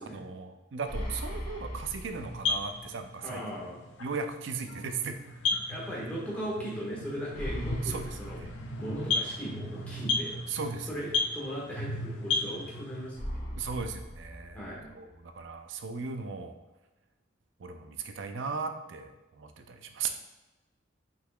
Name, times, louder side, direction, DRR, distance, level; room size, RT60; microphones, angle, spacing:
voice 1, 0.1-3.4 4.0-5.2 5.5-5.6 7.8-8.5 10.5-10.9 13.5-16.6 17.6-20.1, right 5 dB, 70° right, 7 dB, 0.5 m, -37 dB
sound 1, 0.9-2.9 3.2-3.3 7.3-9.3 13.1-15.1, equal, 40° left, 1.0 m, -39 dB
sound 2, 2.1-13.1, left 3 dB, 70° left, 0.6 m, -34 dB
voice 2, 3.2-3.8 5.7-10.3 10.9-13.3 14.5-14.9, equal, 5° left, -6 dB, 1.4 m, -38 dB
5.7 x 3.9 x 2.3 m, 1.1 s
head